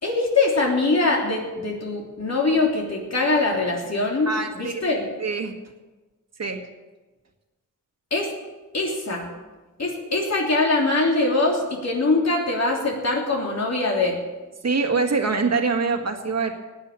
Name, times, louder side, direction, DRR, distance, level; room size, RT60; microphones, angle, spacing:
voice 1, 0.0-5.1 8.1-8.3 8.7-9.3 9.8-14.2, left 3 dB, 50° left, -2 dB, 3.2 m, -23 dB
voice 2, 4.3-4.8 5.2-5.5 6.4-6.7 14.6-16.5, right 4 dB, 50° right, 4 dB, 2.0 m, -24 dB
16.5 x 10.0 x 7.2 m, 1.2 s
wide cardioid pair, 105°, 33 cm